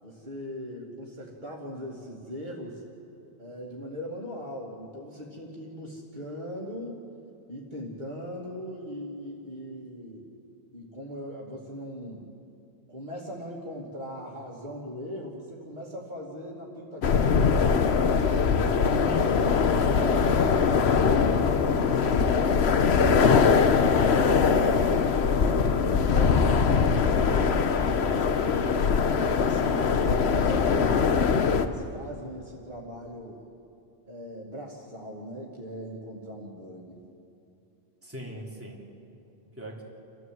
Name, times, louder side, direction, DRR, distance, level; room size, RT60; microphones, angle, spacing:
voice 1, 0.0-2.8 3.4-7.0 7.5-10.3 10.7-12.2 12.9-18.4 25.8-28.9 29.2-31.0 31.5-33.4 34.1-37.0, equal, 45° right, -3 dB, 2.6 m, -39 dB
sound 1, 17.0-31.7, left 5 dB, 80° left, 1.2 m, -22 dB
voice 2, 19.0-19.4 19.9-20.3 38.0-38.8 39.6-39.8, equal, 10° right, -3 dB, 3.3 m, -39 dB
29.5 x 14.5 x 7.9 m, 2.7 s
omnidirectional pair, 1.1 m